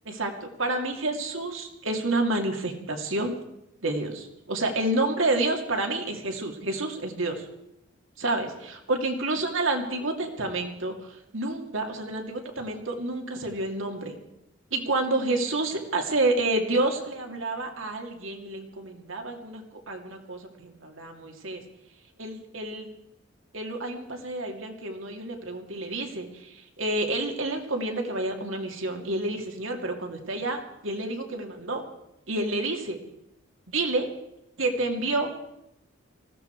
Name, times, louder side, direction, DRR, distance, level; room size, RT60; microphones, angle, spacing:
voice 1, 0.0-3.3 3.8-7.5 8.2-14.1 14.7-21.6 22.2-22.9 23.5-31.8 32.3-33.0 33.7-34.1 34.6-35.3, right 2 dB, 70° right, 3 dB, 2.6 m, -29 dB
19.5 x 15.5 x 4.7 m, 0.83 s
head